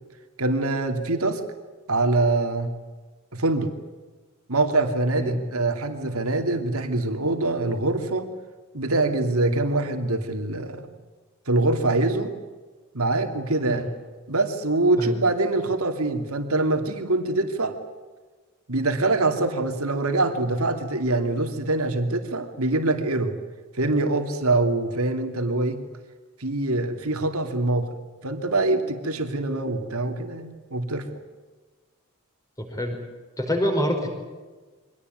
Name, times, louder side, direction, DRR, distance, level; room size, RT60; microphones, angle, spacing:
voice 1, 0.4-1.4 1.9-2.7 3.3-3.7 4.5-8.3 8.7-10.9 11.5-12.3 12.9-13.8 14.3-17.8 18.7-23.3 23.7-25.8 26.4-27.9 28.2-31.1, right 2 dB, 90° right, 6 dB, 2.9 m, -24 dB
voice 2, 33.4-34.1, equal, 15° left, 4 dB, 4.9 m, -25 dB
24.5 x 19.0 x 9.5 m, 1.3 s
head